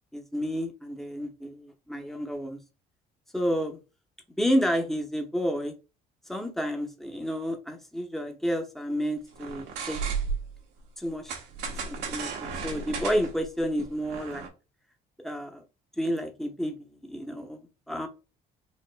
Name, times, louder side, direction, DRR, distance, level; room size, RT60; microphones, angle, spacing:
voice 1, 0.1-2.6 3.3-3.8 4.4-5.7 6.3-10.0 11.0-11.3 11.8-14.5 15.2-15.6 16.0-18.1, equal, ahead, 3 dB, 0.9 m, -30 dB
sound 1, 9.3-10.6 11.3-14.5, right 5 dB, 85° right, 1.3 m, -34 dB
5.1 x 2.9 x 2.2 m, 0.29 s
cardioid pair, 110°, 17 cm